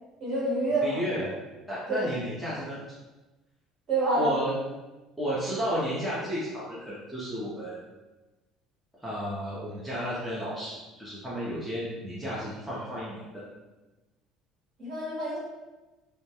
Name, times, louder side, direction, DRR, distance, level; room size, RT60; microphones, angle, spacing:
voice 1, 0.2-1.0 1.9-2.1 3.9-4.3 14.8-15.4, right 2 dB, 45° right, -6 dB, 1.0 m, -27 dB
voice 2, 0.8-1.3 1.7-2.8 4.2-4.5 5.2-7.8 9.0-13.4, equal, 5° right, -9 dB, 0.5 m, -32 dB
2.2 x 2.1 x 2.8 m, 1.1 s
cardioid pair, 160°, 0 cm